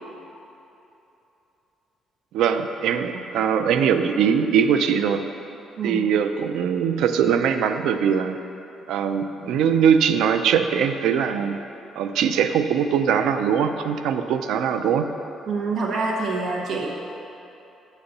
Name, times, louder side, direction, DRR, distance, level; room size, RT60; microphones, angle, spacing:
voice 1, 2.3-5.2 5.8-8.4 8.9-11.6 12.0-15.1, right 7 dB, 85° right, 8 dB, 0.4 m, -21 dB
voice 2, 15.5-16.9, right 3 dB, 50° right, -2 dB, 0.8 m, -26 dB
7.0 x 4.1 x 6.5 m, 3.0 s
cardioid pair, 170°, 0 cm